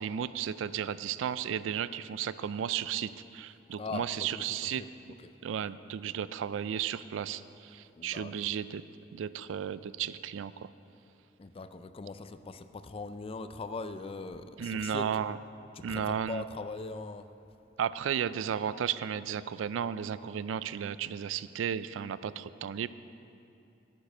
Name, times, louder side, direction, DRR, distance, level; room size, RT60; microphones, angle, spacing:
voice 1, 0.0-4.8 5.4-8.8 9.1-10.7 14.6-15.4 15.8-16.4 17.8-22.9, right 8 dB, 80° right, 15 dB, 0.3 m, -34 dB
voice 2, 3.8-4.9 5.2-5.3 8.0-8.3 11.4-15.1 15.7-17.3, left 3 dB, 30° left, 11 dB, 0.4 m, -40 dB
9.8 x 9.0 x 5.5 m, 2.7 s
head